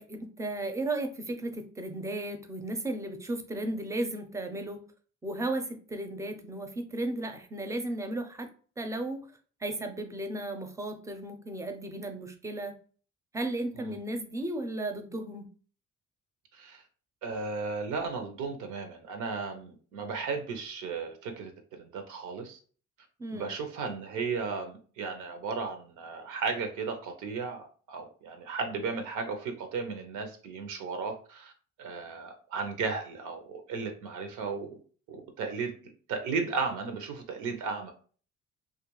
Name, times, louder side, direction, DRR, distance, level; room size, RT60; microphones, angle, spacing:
voice 1, 0.0-4.8 5.2-8.5 8.8-9.3 9.6-12.7 13.3-15.5 23.2-23.5, right 1 dB, 10° right, 6 dB, 0.4 m, -35 dB
voice 2, 17.2-21.5 21.8-22.6 23.3-31.5 31.8-34.8 35.1-35.7 36.1-37.9, right 4 dB, 80° right, 5 dB, 0.6 m, -35 dB
2.3 x 2.2 x 3.0 m, 0.41 s
cardioid pair, 90°, 30 cm